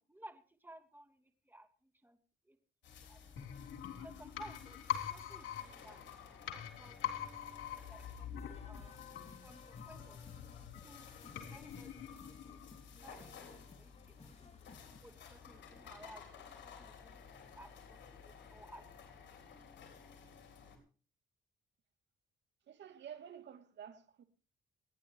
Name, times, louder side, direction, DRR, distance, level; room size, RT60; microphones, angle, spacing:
voice 1, 0.0-2.2 2.4-2.6 2.9-3.5 3.9-6.1 6.3-7.1 7.4-9.0 9.4-12.6 13.0-14.6 15.0-19.3, right 1 dB, 10° right, 2.8 m, -58 dB
sound 1, 2.8-20.8, left 6 dB, 65° left, 5.3 m, -56 dB
sound 2, 3.4-13.1 13.4-13.5, left 10 dB, 80° left, 3.5 m, -44 dB
sound 3, 8.4-15.0, left 4 dB, 30° left, 2.4 m, -60 dB
voice 2, 22.7-24.2, right 8 dB, 65° right, 2.5 m, -51 dB
29.5 x 10.5 x 3.1 m
cardioid pair, 90°, 20 cm